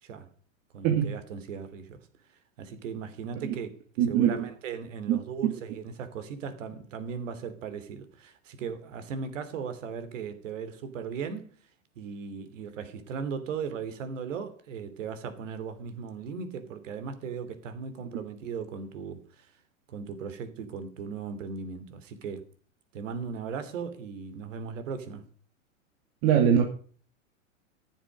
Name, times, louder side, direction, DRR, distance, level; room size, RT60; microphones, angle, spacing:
voice 1, 0.7-2.0 2.6-11.5 12.0-19.5 19.9-22.4 22.9-25.2, right 6 dB, 65° right, 3.0 m, -37 dB
voice 2, 4.0-4.4 5.1-5.2 26.2-26.6, right 9 dB, 50° right, 2.5 m, -22 dB
14.5 x 7.5 x 5.2 m
hypercardioid pair, 120°, 40 cm